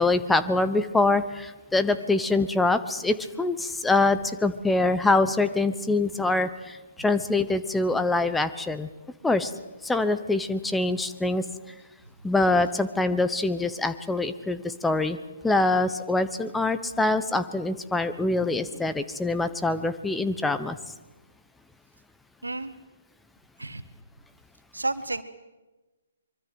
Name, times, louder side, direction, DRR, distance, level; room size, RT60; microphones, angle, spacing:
voice 1, 0.0-8.9 9.2-9.5 9.8-11.4 12.2-15.2 15.4-20.8, left 2 dB, 5° left, 11 dB, 1.0 m, -24 dB
voice 2, 22.4-22.7 23.6-23.8 24.7-25.2, right 2 dB, 75° right, 11 dB, 1.9 m, -30 dB
24.5 x 24.0 x 7.9 m, 1.1 s
figure-of-eight pair, 130°, 0 cm